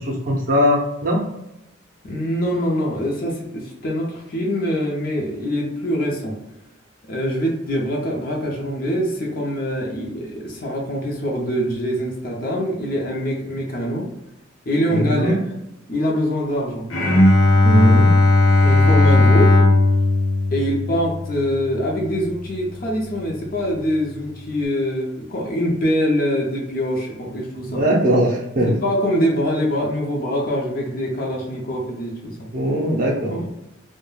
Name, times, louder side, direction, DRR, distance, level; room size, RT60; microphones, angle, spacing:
voice 1, 0.1-1.2 14.9-15.3 17.6-18.1 27.7-28.8 32.5-33.5, equal, 45° right, -2 dB, 0.5 m, -20 dB
voice 2, 2.0-6.3 7.1-14.1 14.7-15.4 15.9-16.9 18.6-19.6 20.5-27.8 28.7-32.3 33.3-33.5, equal, 45° left, -1 dB, 0.6 m, -24 dB
Bowed string instrument, 16.9-22.2, left 2 dB, 85° left, 0.7 m, -16 dB
2.3 x 2.1 x 3.1 m, 0.89 s
head